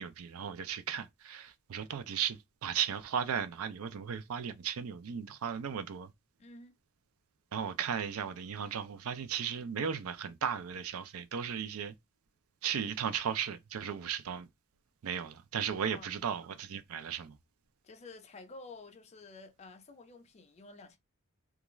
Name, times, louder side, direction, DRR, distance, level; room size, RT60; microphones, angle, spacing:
voice 1, 0.0-6.1 7.5-11.9 12.6-14.5 15.0-17.3, right 7 dB, 90° right, 0.5 m, -36 dB
voice 2, 6.4-6.8 15.8-16.1 17.8-21.0, left 3 dB, 30° left, 0.4 m, -51 dB
2.4 x 2.3 x 3.0 m
head